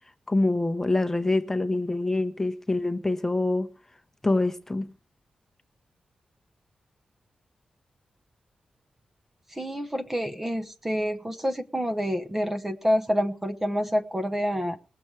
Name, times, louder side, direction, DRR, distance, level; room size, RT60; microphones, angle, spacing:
voice 1, 0.3-3.7 4.2-4.9, left 2 dB, 15° left, 0.9 m, -25 dB
voice 2, 9.5-14.8, equal, 15° right, 0.8 m, -27 dB
20.0 x 7.0 x 4.6 m
wide cardioid pair, 110°, 2 cm